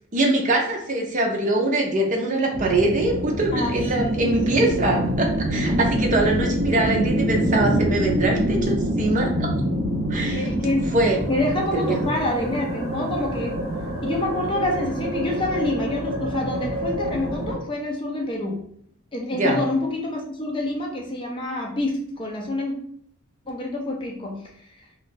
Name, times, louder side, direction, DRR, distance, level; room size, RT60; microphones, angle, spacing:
voice 1, 0.1-9.5 10.1-10.5 10.9-11.2 11.7-12.1 19.3-19.6, right 2 dB, 35° right, 1 dB, 0.6 m, -23 dB
sound 1, 2.5-17.6, equal, 75° right, 0.8 m, -26 dB
voice 2, 3.5-4.4 10.3-10.9 11.3-13.6 14.0-18.6 19.1-22.7 23.5-24.4, left 1 dB, 25° left, 0 dB, 0.6 m, -27 dB
2.6 x 2.4 x 3.7 m, 0.66 s
head